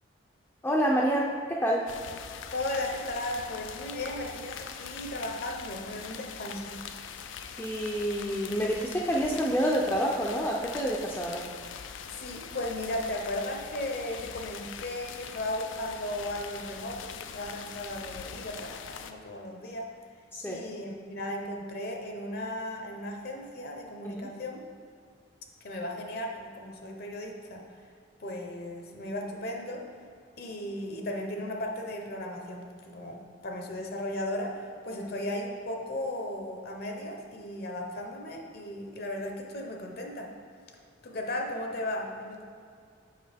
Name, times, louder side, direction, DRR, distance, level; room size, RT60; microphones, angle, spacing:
voice 1, 0.6-1.9 7.6-11.4 20.3-20.7 24.0-24.3 35.0-35.1, equal, 10° left, -3 dB, 0.4 m, -28 dB
sound 1, 1.9-19.1, left 7 dB, 85° left, 0.4 m, -42 dB
voice 2, 2.5-6.8 12.1-19.9 20.5-24.6 25.6-27.8 28.2-29.9 30.4-40.3 41.0-42.4, left 1 dB, 55° left, 2 dB, 0.7 m, -36 dB
6.6 x 5.1 x 3.4 m, 2.2 s
head